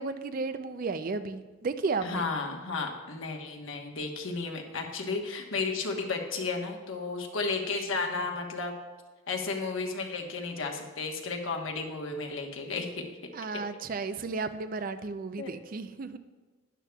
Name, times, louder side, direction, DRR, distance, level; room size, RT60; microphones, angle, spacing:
voice 1, 0.0-2.3 13.3-16.2, right 4 dB, 45° right, 11 dB, 0.4 m, -33 dB
voice 2, 2.0-8.7 9.3-13.0 15.4-15.5, left 4 dB, 85° left, 2 dB, 1.2 m, -33 dB
12.0 x 10.5 x 2.3 m, 1.3 s
head